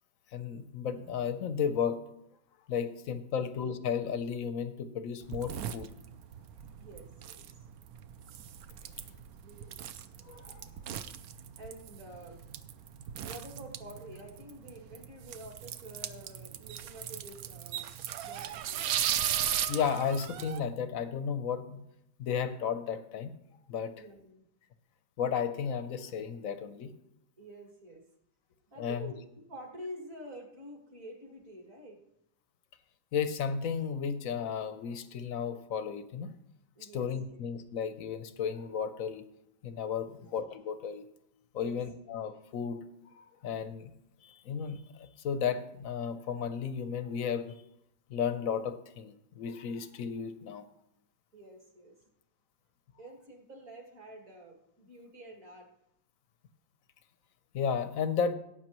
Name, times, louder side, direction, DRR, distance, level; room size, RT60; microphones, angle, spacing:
voice 1, 0.3-2.0 2.7-5.9 10.2-10.8 19.7-21.8 22.2-23.3 23.7-23.9 25.2-26.9 28.8-29.1 33.1-36.3 36.8-39.2 39.6-41.0 41.5-42.8 43.1-43.9 44.2-47.5 48.1-50.6 57.5-58.3, left 7 dB, 65° left, 10 dB, 0.8 m, -34 dB
sound 1, 5.2-20.6, right 10 dB, 75° right, 0.8 m, -37 dB
voice 2, 6.8-7.7 9.1-9.2 9.4-10.1 11.6-12.4 13.2-17.9 18.2-18.9 24.0-24.5 27.4-28.1 28.7-32.0 36.8-37.4 40.1-40.2 41.5-41.8 51.3-52.1 53.0-55.7, equal, 45° right, 1 dB, 2.2 m, -48 dB
17.0 x 8.8 x 3.0 m, 0.80 s
omnidirectional pair, 2.1 m